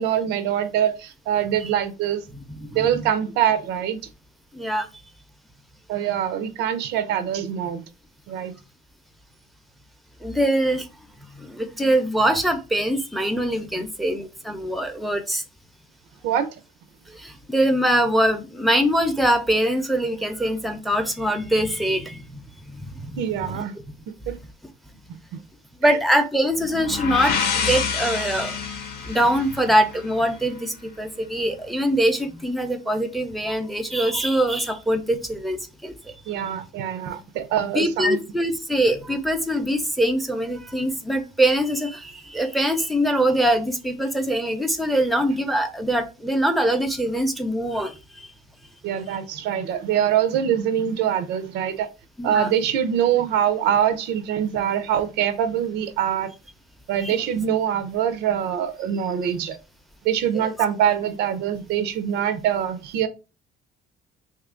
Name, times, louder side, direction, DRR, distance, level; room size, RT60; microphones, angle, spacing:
voice 1, 0.0-2.2 2.7-4.0 5.9-7.8 8.3-8.6 13.8-13.9 16.2-16.5 23.2-23.8 24.3-24.4 25.3-25.4 36.3-38.2 48.8-51.9 52.2-56.3 56.9-59.6 60.0-63.1, right 9 dB, 85° right, 0.5 m, -24 dB
voice 2, 2.5-3.1 4.5-4.9 10.2-10.9 11.3-15.4 17.1-22.4 22.7-23.6 25.8-28.6 29.0-36.1 37.7-48.3 52.2-52.5 57.0-57.2 60.3-60.5, right 1 dB, ahead, 0.5 m, -23 dB
sound 1, 26.6-30.4, left 6 dB, 70° left, 0.7 m, -28 dB
2.7 x 2.4 x 3.6 m
cardioid pair, 110°, 17 cm